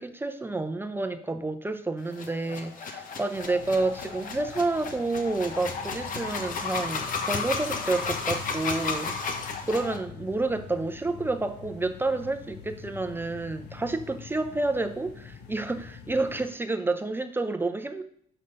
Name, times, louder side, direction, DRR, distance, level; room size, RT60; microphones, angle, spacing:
voice 1, 0.0-18.0, right 2 dB, 10° right, 0.6 m, -29 dB
sound 1, 2.1-10.0, left 5 dB, 55° left, 1.2 m, -33 dB
sound 2, 3.3-16.4, left 6 dB, 80° left, 1.5 m, -45 dB
5.8 x 5.5 x 6.6 m
cardioid pair, 110°, 17 cm